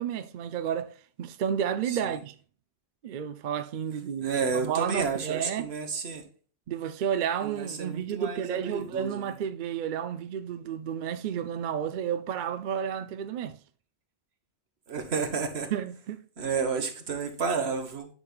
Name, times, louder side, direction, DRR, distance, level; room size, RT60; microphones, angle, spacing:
voice 1, 0.0-2.3 3.0-5.7 6.7-13.6 15.7-16.2, right 8 dB, 60° right, 0.6 m, -31 dB
voice 2, 4.2-6.2 7.4-9.3 14.9-15.7 16.4-18.1, right 5 dB, 80° right, 1.4 m, -31 dB
9.7 x 5.3 x 2.3 m
omnidirectional pair, 1.1 m